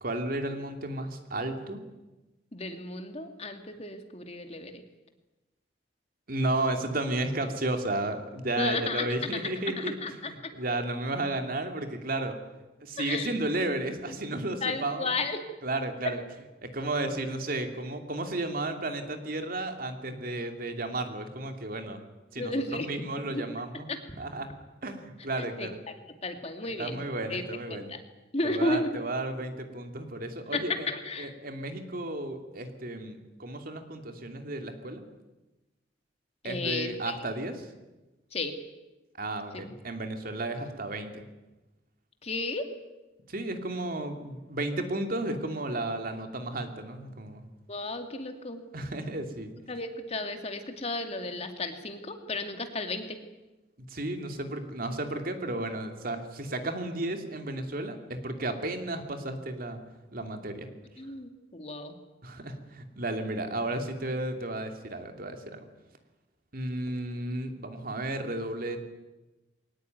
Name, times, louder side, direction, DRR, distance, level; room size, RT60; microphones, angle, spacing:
voice 1, 0.0-1.8 6.3-10.0 10.3-12.4 12.8-15.1 15.6-16.2 16.6-22.0 22.3-23.9 24.2-24.5 24.8-25.8 26.8-27.9 28.4-30.9 31.2-35.0 36.4-37.7 39.2-41.3 43.3-47.4 48.7-49.5 53.9-59.8 60.1-60.7 62.2-65.7 66.5-68.8, right 2 dB, 55° right, 6 dB, 2.8 m, -33 dB
voice 2, 2.5-4.8 8.6-9.1 9.3-10.5 13.0-13.3 14.1-14.2 14.6-15.4 22.4-22.9 23.3-23.4 23.9-24.0 25.4-25.7 26.2-27.0 27.3-27.4 27.7-28.0 28.3-28.9 30.5-31.3 36.4-37.2 38.3-38.5 39.5-39.6 42.2-42.7 47.7-48.6 49.7-53.2 61.0-61.9, left 2 dB, 35° left, 6 dB, 2.4 m, -33 dB
22.5 x 18.5 x 9.5 m, 1.1 s
head